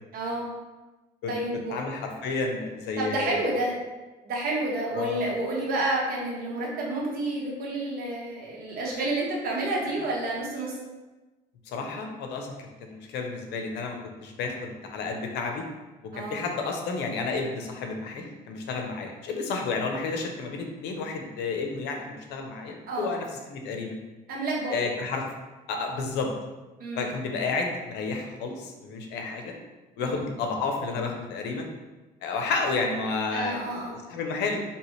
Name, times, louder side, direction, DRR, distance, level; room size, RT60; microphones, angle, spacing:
voice 1, 0.1-0.5 1.3-1.8 3.0-3.7 4.2-10.7 16.1-16.5 22.9-23.2 24.3-24.9 26.8-27.1 30.0-30.2 33.3-33.9, right 2 dB, 60° right, -3 dB, 1.3 m, -30 dB
voice 2, 1.7-3.5 4.9-5.2 11.7-12.5 12.9-15.6 16.1-24.0 24.7-25.2 25.7-26.3 27.0-29.5 30.0-31.7 32.2-34.6, left 4 dB, 85° left, 3 dB, 0.7 m, -31 dB
4.6 x 2.9 x 3.2 m, 1.1 s
cardioid pair, 110°, 17 cm